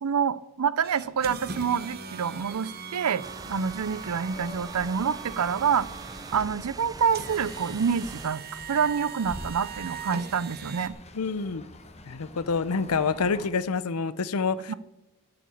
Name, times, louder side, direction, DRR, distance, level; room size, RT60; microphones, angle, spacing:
voice 1, 0.0-3.2 3.5-5.9 6.3-11.0 14.7-14.8, right 6 dB, 85° right, 18 dB, 0.5 m, -27 dB
sound 1, 0.8-10.9, right 5 dB, 45° right, 1.2 m, -41 dB
sound 2, 3.2-8.3, right 3 dB, 15° right, 0.5 m, -43 dB
sound 3, 4.3-13.5, left 2 dB, 30° left, 1.2 m, -47 dB
voice 2, 11.1-11.6 12.1-14.7, left 5 dB, 90° left, 16 dB, 0.7 m, -27 dB
10.5 x 8.1 x 8.5 m, 0.95 s
head